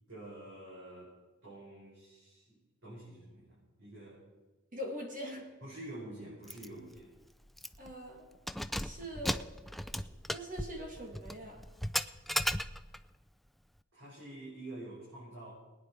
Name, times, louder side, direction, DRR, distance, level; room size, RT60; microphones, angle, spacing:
voice 1, 0.1-1.2 1.4-4.2 5.6-7.1 13.9-15.5, right 1 dB, 70° right, -8 dB, 5.5 m, -48 dB
voice 2, 4.7-5.5 7.8-8.2 8.8-9.4 9.9-11.6, equal, 40° right, 1 dB, 2.0 m, -43 dB
Keys jangling, 6.5-6.7 7.0-7.1 7.6-7.9 8.3-13.1, equal, ahead, 0.3 m, -36 dB
20.5 x 9.8 x 4.5 m, 1.2 s
head